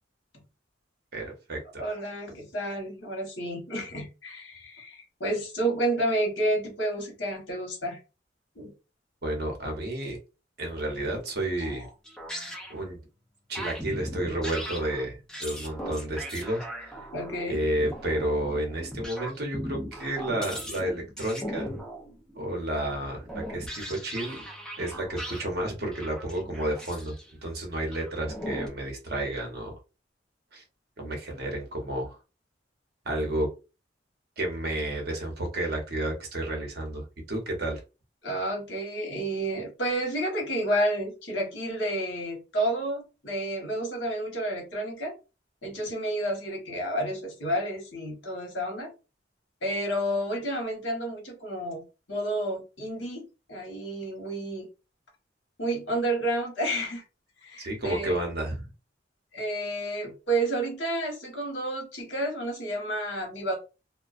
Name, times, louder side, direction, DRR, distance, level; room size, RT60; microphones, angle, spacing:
voice 1, 1.1-1.8 9.2-10.2 10.6-11.9 12.7-13.0 13.5-17.0 17.5-21.7 22.3-24.4 24.8-27.1 27.4-29.7 30.5-30.6 31.0-32.2 33.0-33.5 34.4-37.8 57.6-58.6, right 1 dB, 55° right, 0.8 m, -31 dB
voice 2, 1.8-8.0 8.6-8.7 11.6-11.8 17.1-17.6 38.2-45.1 45.6-48.9 49.6-51.8 52.1-54.7 55.6-57.0 57.4-58.2 59.3-63.5, right 1 dB, 80° left, 1.1 m, -30 dB
sound 1, 12.1-12.9 13.5-22.6 23.2-25.5 25.8-27.3 27.9-28.7, equal, 5° left, 0.4 m, -38 dB
2.4 x 2.2 x 2.4 m
head